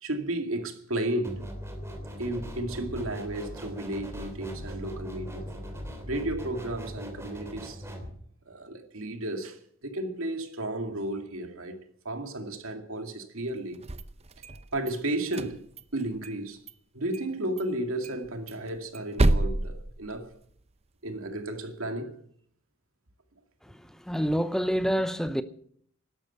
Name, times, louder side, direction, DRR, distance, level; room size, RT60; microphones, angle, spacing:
voice 1, 0.0-1.4 2.2-5.5 6.0-7.9 8.5-11.8 12.0-13.8 14.5-15.6 15.9-16.6 16.9-20.3 21.0-22.1, right 1 dB, 80° right, 2.3 m, -33 dB
sound 1, 1.2-8.1, equal, 15° right, 3.1 m, -40 dB
sound 2, 13.7-14.9 15.3-16.4 16.7-16.8 17.1-17.3 17.6-17.7 18.0-20.6, right 1 dB, 30° right, 0.7 m, -29 dB
voice 2, 23.6-25.4, equal, ahead, 0.6 m, -28 dB
12.5 x 12.0 x 7.9 m
head